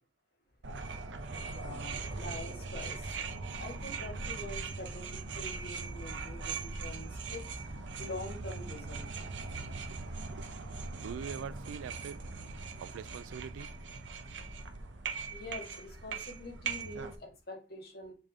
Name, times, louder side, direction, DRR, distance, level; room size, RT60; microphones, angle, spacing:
sound 1, 0.6-17.2, right 4 dB, 70° right, 0.7 m, -40 dB
voice 1, 1.5-3.1 3.6-7.4 8.0-9.1 15.3-18.1, left 1 dB, 50° left, 2.1 m, -45 dB
voice 2, 10.9-12.2 12.8-13.7, right 7 dB, 90° right, 0.3 m, -43 dB
7.4 x 3.5 x 3.6 m
head